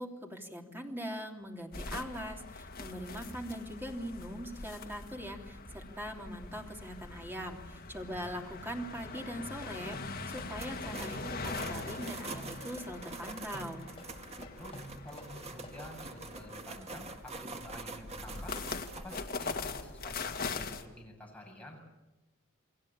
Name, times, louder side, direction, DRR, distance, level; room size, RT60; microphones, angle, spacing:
voice 1, 0.0-13.8, equal, 10° right, 2 dB, 3.1 m, -41 dB
sound 1, 1.7-20.8, left 4 dB, 45° left, 2.0 m, -43 dB
voice 2, 8.1-8.4 14.5-18.6 18.9-21.8, left 1 dB, 5° left, -1 dB, 7.7 m, -49 dB
sound 2, 8.8-15.8, equal, 25° left, 5.4 m, -49 dB
sound 3, 10.4-19.6, right 3 dB, 30° right, 2.0 m, -46 dB
29.5 x 22.0 x 8.8 m, 1.1 s
head